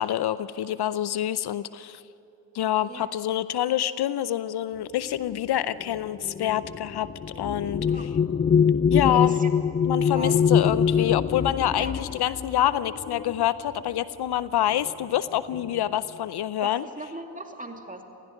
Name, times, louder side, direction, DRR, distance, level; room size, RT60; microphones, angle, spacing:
voice 1, 0.0-2.0 2.5-7.1 7.4-8.1 8.9-9.4 9.8-16.8, left 11 dB, 65° left, 16 dB, 0.6 m, -26 dB
sound 1, 5.0-14.0 14.9-15.0 15.4-15.9, left 7 dB, 25° left, 0.4 m, -25 dB
voice 2, 7.7-8.1 9.0-9.6 10.1-10.5 11.8-11.9 16.6-18.0, right 2 dB, 20° right, 3 dB, 2.6 m, -38 dB
17.5 x 16.5 x 9.8 m, 2.8 s
supercardioid pair, 55°, 42 cm